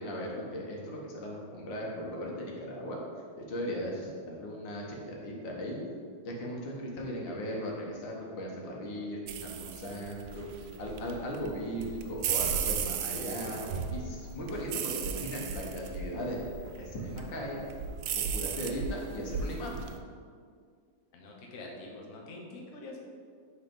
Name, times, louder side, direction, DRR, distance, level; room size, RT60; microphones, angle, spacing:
voice 1, 0.0-3.0 3.5-5.8 6.2-10.5 10.8-16.4 16.8-17.6 18.1-19.9, equal, 80° left, -2 dB, 1.8 m, -37 dB
sound 1, 9.3-20.0, right 7 dB, 80° right, 1.2 m, -36 dB
voice 2, 21.1-23.0, left 2 dB, 50° left, -1 dB, 1.1 m, -45 dB
5.6 x 4.1 x 5.3 m, 2.1 s
omnidirectional pair, 2.0 m